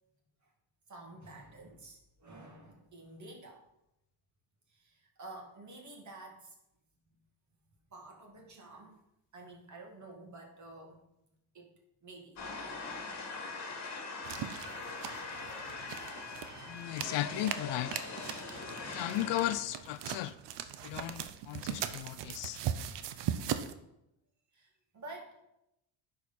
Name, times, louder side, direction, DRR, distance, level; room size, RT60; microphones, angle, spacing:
voice 1, 0.9-3.6 4.7-6.6 7.1-7.2 7.9-9.0 9.3-11.1 11.5-11.7 12.0-12.4 17.3-17.5 24.5-25.4, right 2 dB, 40° right, 1 dB, 2.2 m, -50 dB
sound 1, 12.4-19.5, left 3 dB, 35° left, 2.0 m, -42 dB
sound 2, 14.2-23.7, right 9 dB, 65° right, 0.7 m, -40 dB
voice 2, 16.7-17.9 18.9-20.3 20.8-22.6, left 14 dB, 70° left, 14 dB, 0.5 m, -35 dB
11.0 x 4.8 x 4.2 m, 0.86 s
cardioid pair, 105°, 45 cm